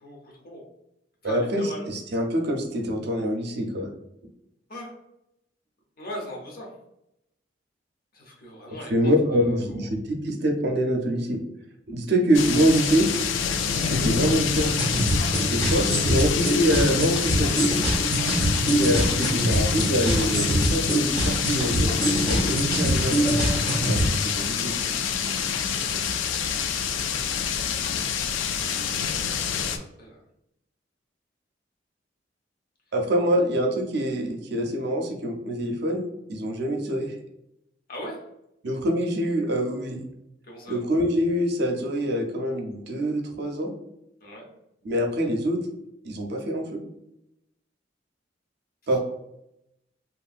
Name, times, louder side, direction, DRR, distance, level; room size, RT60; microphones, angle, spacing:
voice 1, 0.0-0.6 1.2-1.8 4.7-4.9 6.0-6.7 8.1-9.7 18.1-18.3 25.7-26.5 29.5-30.2 37.9-38.2 40.4-40.8 44.2-44.5, left 1 dB, 50° left, -1 dB, 0.8 m, -40 dB
voice 2, 1.2-3.9 8.9-11.4 11.9-13.1 13.8-14.8 15.5-17.7 18.7-23.1 23.8-24.7 32.9-37.1 38.6-40.1 40.7-43.7 44.8-45.6 46.0-46.8 48.9-49.0, equal, 60° right, 2 dB, 0.5 m, -25 dB
sound 1, 12.3-29.8, left 7 dB, 80° left, 0.3 m, -27 dB
sound 2, 14.6-24.1, right 1 dB, 25° left, 0.8 m, -24 dB
2.9 x 2.6 x 2.4 m, 0.82 s
head